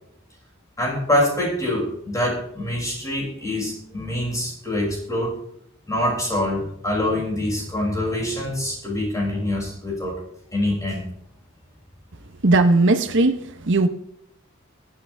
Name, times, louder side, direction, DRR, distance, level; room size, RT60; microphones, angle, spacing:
voice 1, 0.8-5.4 5.9-10.2 10.5-11.1 12.9-13.1, left 1 dB, 15° left, 6.7 m, -25 dB
voice 2, 12.4-13.9, right 2 dB, 60° right, 1.1 m, -18 dB
22.0 x 9.7 x 3.6 m
head